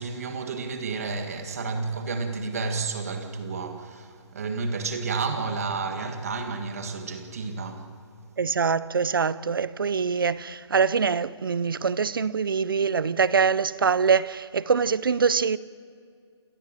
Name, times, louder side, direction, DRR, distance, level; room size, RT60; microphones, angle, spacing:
voice 1, 0.0-7.9, right 4 dB, 30° right, 1.7 m, -31 dB
voice 2, 8.4-15.6, right 5 dB, 50° right, 0.6 m, -24 dB
28.0 x 13.5 x 8.9 m
hypercardioid pair, 175°, 15 cm